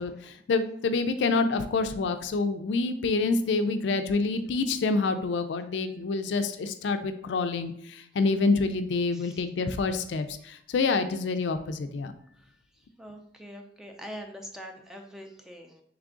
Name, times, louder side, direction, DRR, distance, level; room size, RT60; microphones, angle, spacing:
voice 1, 0.0-12.1, left 3 dB, 70° left, 9 dB, 0.4 m, -27 dB
voice 2, 13.0-15.8, equal, 5° right, 3 dB, 0.4 m, -43 dB
3.6 x 3.3 x 3.7 m, 0.67 s
head